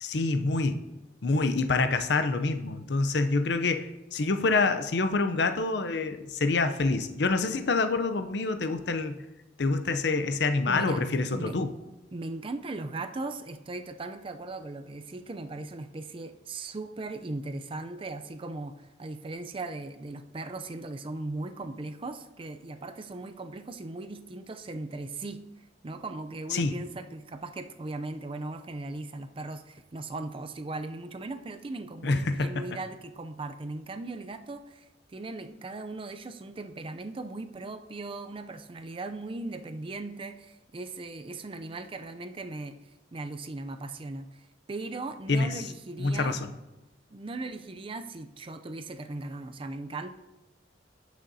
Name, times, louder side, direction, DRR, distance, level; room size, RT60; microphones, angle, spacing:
voice 1, 0.0-0.8 1.2-9.2 9.6-11.7 26.5-26.7 32.0-32.5 45.3-45.5 46.0-46.4, left 3 dB, 70° left, 9 dB, 0.6 m, -26 dB
voice 2, 10.7-11.0 11.3-11.6 12.1-42.8 43.1-46.4 47.1-50.1, right 2 dB, 30° right, 8 dB, 0.4 m, -38 dB
16.5 x 6.3 x 2.7 m, 1.0 s
head